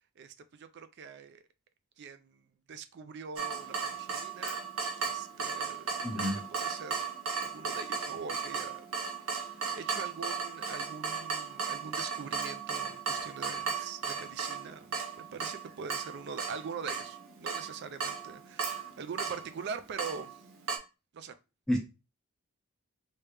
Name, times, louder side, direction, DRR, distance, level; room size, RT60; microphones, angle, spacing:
voice 1, 0.2-1.4 2.0-6.3 6.5-7.1 7.4-8.9 9.3-20.4 21.1-21.3, right 5 dB, 50° right, 0.3 m, -43 dB
Water tap faucet / Drip, 3.4-20.8, right 5 dB, 70° right, 0.8 m, -36 dB
voice 2, 6.0-6.4 21.7-21.8, left 1 dB, ahead, 0.7 m, -29 dB
3.3 x 2.8 x 3.3 m
head